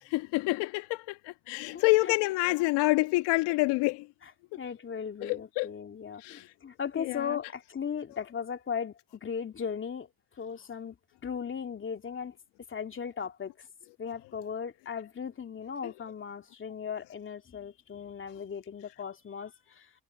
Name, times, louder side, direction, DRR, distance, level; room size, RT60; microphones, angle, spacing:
voice 1, 0.0-4.1 4.5-4.6 5.2-5.7 6.2-6.5 7.0-7.4 15.8-15.9, left 22 dB, 60° left, 1.6 m, -28 dB
voice 2, 4.6-10.1 10.4-10.9 11.2-12.3 12.7-13.5 14.0-19.9, left 7 dB, 25° left, 2.6 m, -37 dB
hypercardioid pair, 85°, 46 cm